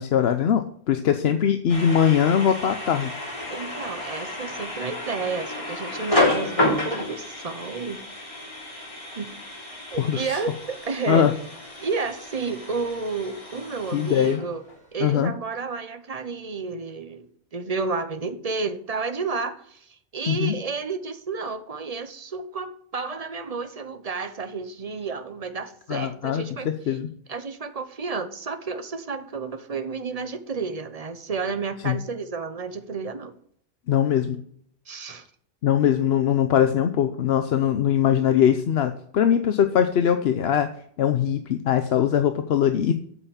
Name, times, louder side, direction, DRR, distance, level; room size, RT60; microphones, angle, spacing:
voice 1, 0.0-3.1 10.0-10.4 11.1-11.3 13.9-14.4 15.0-15.3 20.3-20.5 25.9-27.1 31.8-32.0 33.9-34.4 35.6-40.7 41.0-42.9, left 9 dB, 75° left, 9 dB, 0.9 m, -21 dB
sound 1, 1.7-14.8, left 2 dB, 30° left, 3.4 m, -30 dB
voice 2, 3.5-8.0 9.1-9.3 9.9-11.3 11.8-14.6 14.9-17.2 17.5-27.0 27.3-33.3 34.9-35.3 36.0-36.1, right 4 dB, 40° right, 10 dB, 0.9 m, -31 dB
8.3 x 5.7 x 7.0 m, 0.62 s
omnidirectional pair, 1.1 m